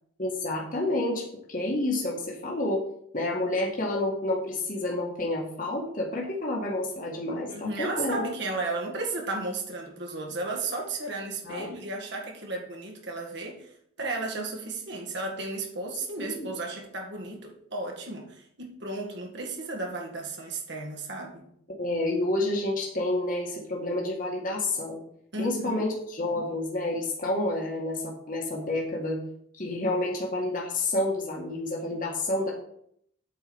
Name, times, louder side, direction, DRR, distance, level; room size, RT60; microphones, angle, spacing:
voice 1, 0.2-2.8 3.1-8.2 11.4-11.7 16.2-16.5 21.8-25.0 25.4-29.2 29.5-32.5, left 2 dB, 40° left, -2 dB, 1.8 m, -29 dB
voice 2, 7.5-13.7 14.0-21.5 25.3-25.9, right 3 dB, 55° right, 0 dB, 1.9 m, -34 dB
8.4 x 4.7 x 7.1 m, 0.69 s
head